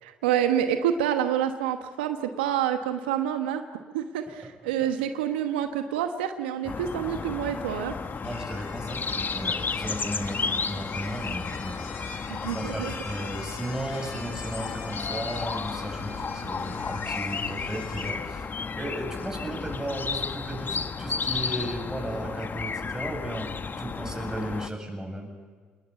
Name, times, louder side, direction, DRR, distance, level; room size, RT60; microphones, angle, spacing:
voice 1, 0.0-3.6 3.9-7.9 12.3-12.9, right 10 dB, 85° right, 7 dB, 1.1 m, -27 dB
voice 2, 4.3-4.9 8.2-18.5 18.7-25.3, right 1 dB, 10° right, 3 dB, 7.8 m, -35 dB
sound 1, 6.6-24.7, left 5 dB, 40° left, 1.2 m, -33 dB
sound 2, 6.8-18.1, left 4 dB, 80° left, 4.4 m, -44 dB
27.0 x 20.0 x 9.2 m, 1.5 s
hypercardioid pair, 50°, 5 cm